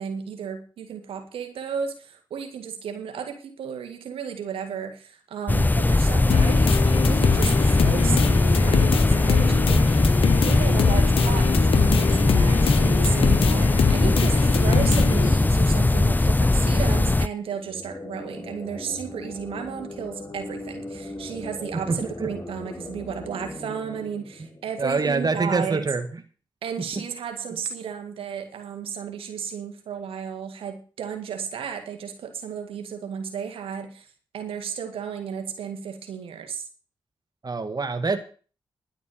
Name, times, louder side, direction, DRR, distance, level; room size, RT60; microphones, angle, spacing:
voice 1, 0.0-10.2 10.4-25.9 26.6-34.1 34.3-36.7, right 7 dB, 85° right, 5 dB, 2.0 m, -33 dB
sound 1, 5.5-17.3, left 2 dB, 20° left, 0.6 m, -19 dB
sound 2, 6.3-15.3, left 9 dB, 80° left, 0.7 m, -26 dB
sound 3, 17.4-25.1, left 1 dB, 35° left, 4.6 m, -39 dB
voice 2, 21.9-22.3 24.8-26.1 27.0-27.1 37.4-38.2, right 3 dB, 45° right, 8 dB, 1.9 m, -25 dB
11.0 x 8.0 x 7.8 m, 0.39 s
supercardioid pair, 40°, 9 cm